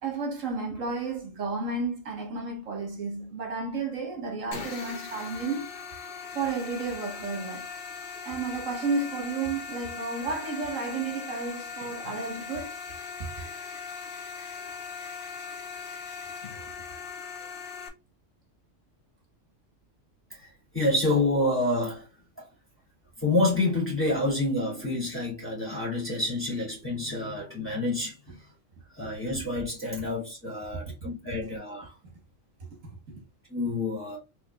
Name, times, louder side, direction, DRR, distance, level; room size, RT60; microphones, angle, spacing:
voice 1, 0.0-5.7 6.3-7.7 8.3-12.8 16.7-16.8 29.0-29.1 30.0-30.1 30.7-31.1 31.4-31.5 32.6-32.7 33.1-33.2, right 4 dB, 75° right, 1.9 m, -32 dB
sound 1, 4.5-17.9, left 5 dB, 50° left, 1.0 m, -39 dB
voice 2, 20.3-22.1 22.4-22.5 23.2-28.5 28.9-31.9 33.5-34.2, left 2 dB, 10° left, 2.1 m, -28 dB
4.5 x 3.4 x 2.2 m
omnidirectional pair, 1.3 m